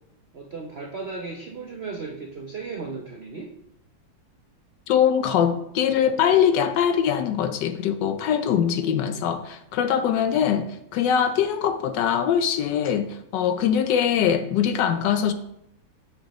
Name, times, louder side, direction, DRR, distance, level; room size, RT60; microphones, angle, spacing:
voice 1, 0.3-3.5 8.7-9.2, right 4 dB, 75° right, 0.5 m, -36 dB
voice 2, 4.9-15.3, left 8 dB, 75° left, 1.1 m, -22 dB
7.7 x 6.7 x 3.0 m
omnidirectional pair, 2.1 m